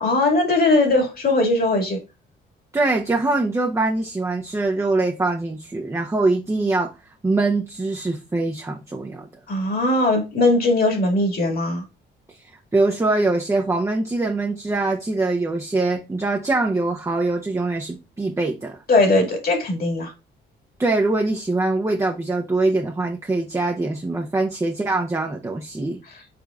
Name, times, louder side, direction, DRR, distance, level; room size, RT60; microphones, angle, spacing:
voice 1, 0.0-2.0 9.5-11.8 18.9-20.1, left 2 dB, 50° left, 2.0 m, -19 dB
voice 2, 2.7-6.9 7.2-9.3 12.7-18.8 20.8-26.0, right 2 dB, 15° right, 0.7 m, -23 dB
5.0 x 4.0 x 2.4 m
cardioid pair, 90°, 20 cm